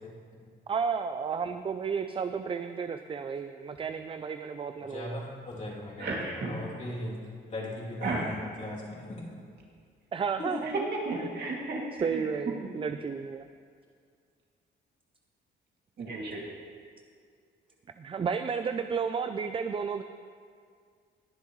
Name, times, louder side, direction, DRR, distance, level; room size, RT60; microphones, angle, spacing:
voice 1, 0.7-5.2 10.1-10.9 12.0-13.5 18.0-20.0, right 6 dB, 25° right, 9 dB, 0.4 m, -32 dB
voice 2, 4.8-7.2 7.5-9.3 10.4-10.6, left 1 dB, 35° left, -5 dB, 2.9 m, -38 dB
voice 3, 6.0-6.5 8.0-8.3 10.6-12.2 16.0-16.4, right 2 dB, 55° right, -3 dB, 2.4 m, -33 dB
20.0 x 7.0 x 3.1 m, 2.1 s
cardioid pair, 90°, 20 cm